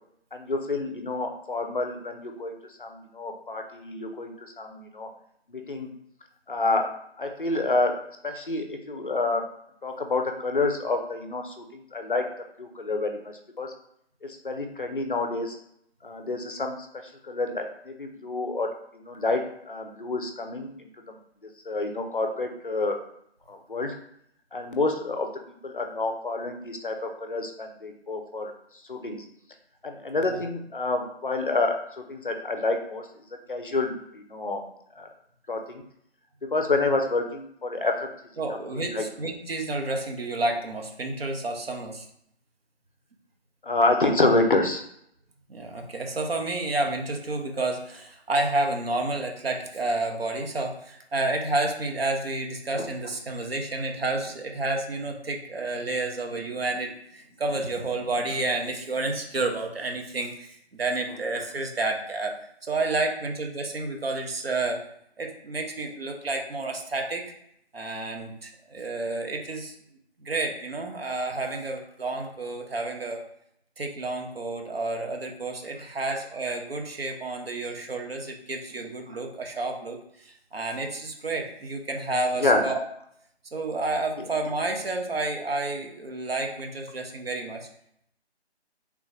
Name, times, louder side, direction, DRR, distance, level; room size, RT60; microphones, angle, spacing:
voice 1, 0.3-2.5 2.8-5.1 5.5-5.9 6.5-6.9 7.2-7.9 8.2-9.4 9.8-12.2 12.6-13.7 14.2-15.6 16.0-16.8 17.2-21.2 21.7-23.0 23.5-23.9 24.5-25.3 25.6-28.5 28.9-29.2 29.8-33.1 33.5-34.6 35.0-35.1 35.5-35.8 36.4-38.1 38.8-39.1 43.6-44.8 52.7-52.9 82.4-82.6 84.2-84.3, left 2 dB, 50° left, 5 dB, 0.5 m, -28 dB
voice 2, 38.4-42.1 45.5-62.3 62.6-64.8 65.2-67.2 67.7-69.7 70.2-73.2 73.8-82.8 83.5-87.7, right 2 dB, 65° right, 3 dB, 0.8 m, -30 dB
3.4 x 2.6 x 3.1 m, 0.71 s
figure-of-eight pair, 175°, 33 cm